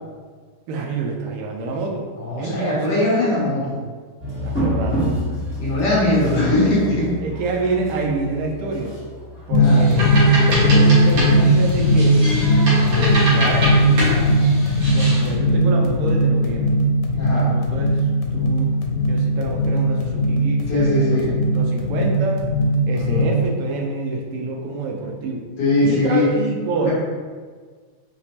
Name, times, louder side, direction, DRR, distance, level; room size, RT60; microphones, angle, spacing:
voice 1, 0.7-2.0 2.4-3.0 4.3-5.2 7.2-8.9 9.5-10.1 10.5-12.2 12.8-14.3 14.7-16.7 17.3-18.7 19.1-22.4 22.9-25.5 25.8-26.9, right 3 dB, 85° right, 1 dB, 1.5 m, -27 dB
voice 2, 2.2-3.8 5.6-7.1 9.5-9.8 17.1-17.5 20.7-21.3 22.9-23.3 25.6-26.3 26.8-26.9, left 2 dB, 65° left, -6 dB, 1.3 m, -20 dB
sound 1, 4.2-10.6, equal, 15° left, 0.5 m, -28 dB
sound 2, 9.5-23.5, equal, 85° left, 1.5 m, -18 dB
sound 3, 9.6-15.3, right 1 dB, 65° right, 1.8 m, -25 dB
5.0 x 2.0 x 2.8 m, 1.5 s
omnidirectional pair, 2.4 m